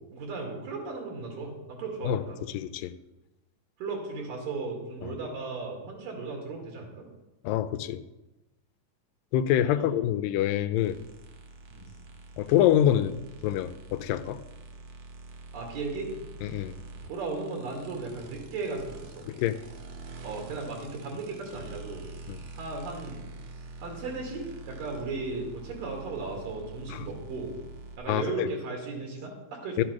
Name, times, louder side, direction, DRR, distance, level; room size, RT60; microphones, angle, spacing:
voice 1, 0.1-2.4 3.8-7.1 9.5-10.0 11.7-11.9 15.5-16.1 17.1-19.3 20.2-22.0 22.5-23.3 23.5-27.5 28.0-29.9, right 3 dB, 80° right, 0 dB, 3.7 m, -36 dB
voice 2, 2.5-2.9 5.0-5.1 7.4-8.0 9.3-11.0 12.4-13.2 13.4-14.4 16.4-16.8 19.3-19.6 22.3-22.4 26.9-27.1 28.1-28.5 29.8-29.9, left 11 dB, 90° left, 12 dB, 2.3 m, -26 dB
sound 1, 10.8-28.0, right 3 dB, 60° right, 2.0 m, -46 dB
12.0 x 7.5 x 6.0 m, 1.0 s
omnidirectional pair, 3.9 m